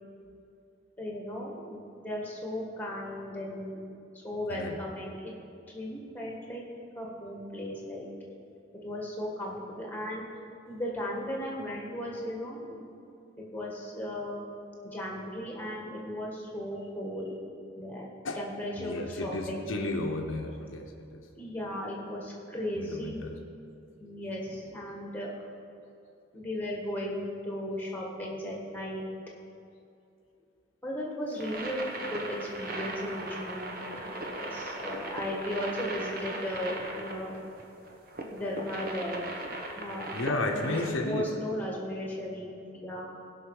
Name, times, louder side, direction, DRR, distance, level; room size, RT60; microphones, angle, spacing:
voice 1, 1.0-3.8 4.1-5.3 5.7-6.6 6.9-8.1 8.8-10.3 10.7-12.8 13.5-14.4 14.8-17.4 17.7-19.9 21.4-23.1 24.0-25.3 26.3-29.0 30.8-37.3 38.3-39.3 39.7-40.1 40.5-43.1, equal, 10° left, -2 dB, 1.6 m, -36 dB
voice 2, 18.8-21.2 22.8-23.4 24.5-24.6 40.1-41.3, left 2 dB, 85° left, 2 dB, 0.9 m, -33 dB
sound 1, 31.3-40.9, right 2 dB, 45° right, 1.0 m, -38 dB
17.0 x 5.8 x 4.8 m, 2.5 s
head